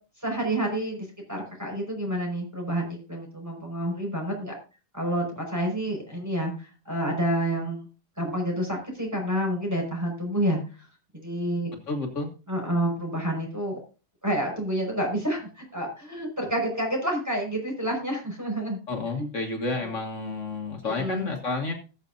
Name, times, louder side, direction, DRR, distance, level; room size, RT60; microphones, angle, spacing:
voice 1, 0.2-4.5 4.9-7.9 8.2-10.6 11.1-11.7 12.5-13.8 14.2-18.8 20.8-21.2, right 1 dB, 10° right, 0 dB, 5.3 m, -29 dB
voice 2, 11.9-12.3 18.9-21.7, left 3 dB, 65° left, 2 dB, 1.9 m, -30 dB
20.0 x 6.8 x 2.6 m, 0.33 s
omnidirectional pair, 1.4 m